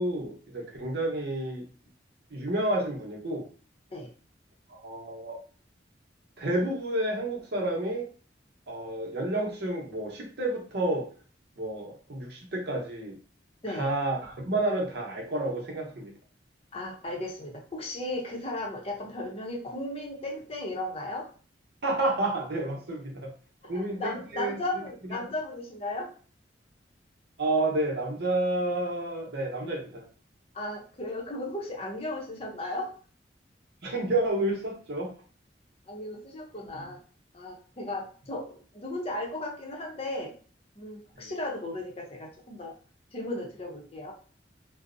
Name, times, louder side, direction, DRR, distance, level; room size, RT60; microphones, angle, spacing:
voice 1, 0.0-1.7 2.3-3.4 4.7-5.4 6.4-8.1 8.7-11.1 11.6-13.1 13.7-16.1 21.8-23.3 23.7-24.5 25.1-25.2 27.4-30.0 33.8-35.1 36.7-36.8 41.2-41.3, right 2 dB, 65° right, -1 dB, 0.8 m, -30 dB
voice 2, 16.7-21.3 23.7-26.1 30.5-32.9 35.9-37.0 37.3-40.3 40.8-42.7 43.1-44.1, left 1 dB, 35° left, 0 dB, 0.6 m, -35 dB
2.5 x 2.0 x 2.5 m, 0.40 s
head